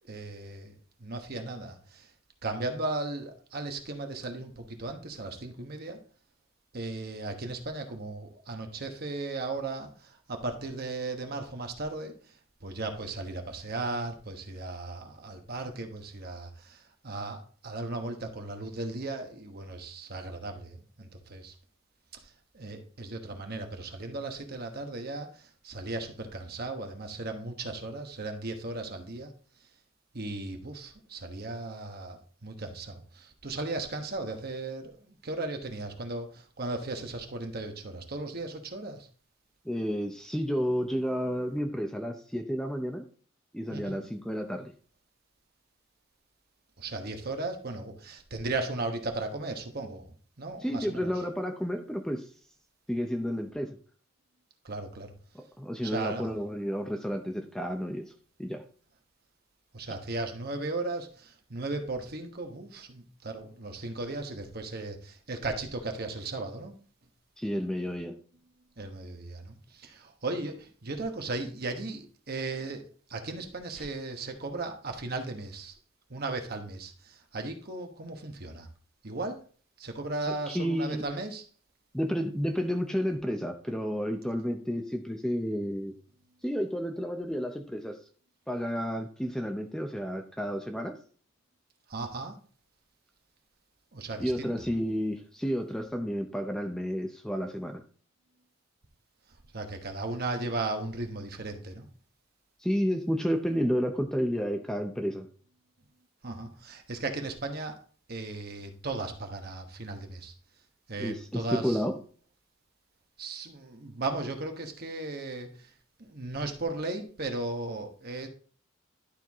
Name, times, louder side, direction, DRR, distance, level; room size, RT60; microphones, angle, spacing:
voice 1, 0.1-0.7 1.0-2.1 2.4-6.0 6.7-21.5 22.1-29.3 30.1-39.1 43.7-44.0 46.8-51.1 54.6-55.1 55.8-56.3 59.7-66.8 68.8-75.8 76.1-78.7 79.0-79.4 79.8-81.4 91.9-92.4 93.9-94.5 99.5-101.9 106.2-107.8 108.1-110.3 110.9-111.8 113.2-115.7 116.0-118.3, right 2 dB, 50° right, 1.2 m, -36 dB
voice 2, 39.6-43.0 43.5-44.7 50.6-52.3 52.9-53.8 55.3-58.1 58.4-58.6 67.4-68.1 80.3-81.0 81.9-85.9 86.4-88.0 88.5-91.0 94.2-97.8 102.6-105.3 111.0-111.9, equal, 5° left, 0.6 m, -31 dB
11.5 x 4.6 x 3.5 m
head